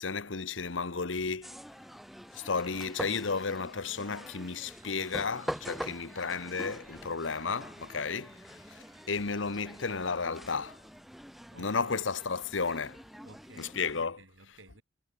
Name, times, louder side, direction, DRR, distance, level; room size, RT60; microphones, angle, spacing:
voice 1, 0.0-1.6 2.3-10.8 11.6-13.0 13.6-14.2, left 4 dB, 90° left, 1.2 m, -33 dB
sound 1, 1.4-14.0, equal, ahead, 1.4 m, -45 dB
sound 2, 2.8-9.9, right 3 dB, 15° right, 5.2 m, -61 dB
voice 2, 11.0-12.1 13.2-14.8, right 2 dB, 85° right, 7.1 m, -57 dB
head